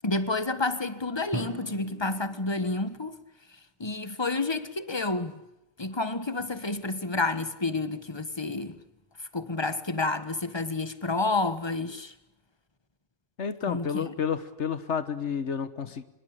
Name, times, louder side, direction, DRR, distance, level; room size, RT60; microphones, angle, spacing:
voice 1, 0.0-3.2 3.8-5.4 5.8-8.7 9.2-12.1 13.7-14.1, left 3 dB, 25° left, 1.5 m, -30 dB
Drum, 1.3-3.2, right 2 dB, 15° right, 1.0 m, -40 dB
voice 2, 13.4-16.0, left 6 dB, 80° left, 1.6 m, -30 dB
26.0 x 21.0 x 8.9 m
omnidirectional pair, 1.2 m